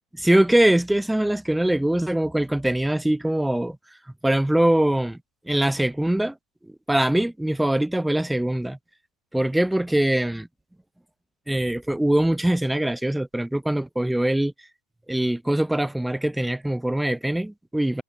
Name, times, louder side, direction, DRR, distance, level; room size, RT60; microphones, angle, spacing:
voice 1, 0.2-3.8 4.2-5.2 5.5-6.3 6.9-8.8 9.3-10.5 11.5-14.5 15.1-18.0, right 1 dB, 5° right, 1.1 m, -22 dB
figure-of-eight pair, 85°, 0 cm